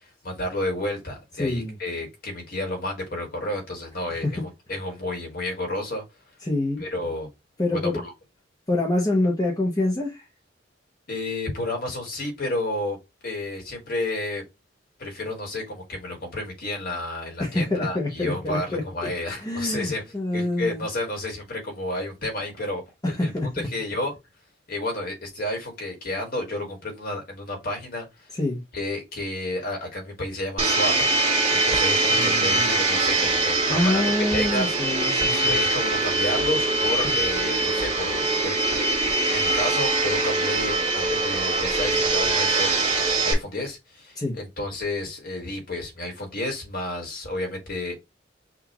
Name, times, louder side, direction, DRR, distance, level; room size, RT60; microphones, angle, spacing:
voice 1, 0.0-4.4 4.7-6.0 6.8-7.3 7.7-8.1 11.1-13.0 13.2-14.4 15.0-23.3 23.7-24.1 24.7-28.3 28.7-30.9 31.5-34.0 34.3-34.8 35.3-38.5 39.3-42.8 43.2-47.9, left 1 dB, 55° left, 1.9 m, -31 dB
voice 2, 1.4-1.8 4.1-4.3 6.4-6.8 7.6-8.0 8.7-10.3 17.4-18.8 19.4-20.9 23.0-23.5 28.3-28.6 32.1-32.7 33.7-35.5 44.2-44.4, left 2 dB, 20° left, 1.0 m, -26 dB
Domestic sounds home sounds, 30.6-43.3, right 2 dB, 30° right, 2.1 m, -23 dB
5.9 x 2.7 x 2.9 m
head